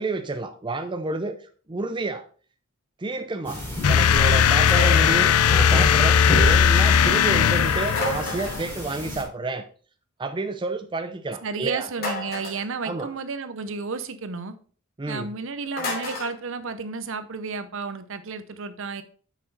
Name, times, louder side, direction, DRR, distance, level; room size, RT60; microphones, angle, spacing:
voice 1, 0.0-1.4 1.7-2.2 3.0-9.6 10.2-11.9 12.9-13.1 15.0-15.3, right 3 dB, 20° right, 0.5 m, -30 dB
sound 1, 3.4-9.2, left 1 dB, 10° left, 3.1 m, -31 dB
sound 2, 3.8-8.5, left 8 dB, 80° left, 0.4 m, -18 dB
sound 3, 4.7-5.2 7.9-8.7 12.0-12.7 15.8-16.3, left 1 dB, 45° left, 2.8 m, -30 dB
voice 2, 11.4-14.6 15.1-19.0, right 4 dB, 60° right, 0.7 m, -32 dB
6.8 x 6.1 x 4.0 m
head